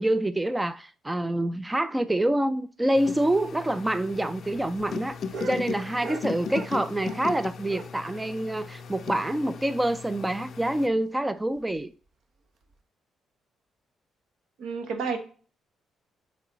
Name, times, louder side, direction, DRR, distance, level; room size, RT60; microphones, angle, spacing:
voice 1, 0.0-5.2 5.5-11.9, right 1 dB, 10° right, 0.3 m, -26 dB
sound 1, 3.0-10.9, left 6 dB, 55° left, 0.4 m, -38 dB
sound 2, 3.9-7.3 7.6-9.6 9.9-10.0 10.3-10.4 10.8-10.9 11.5-11.8 12.6-12.7, right 4 dB, 60° right, 0.9 m, -43 dB
voice 2, 14.6-15.2, right 5 dB, 80° right, 1.4 m, -30 dB
8.0 x 3.1 x 4.0 m
cardioid pair, 90°, 0 cm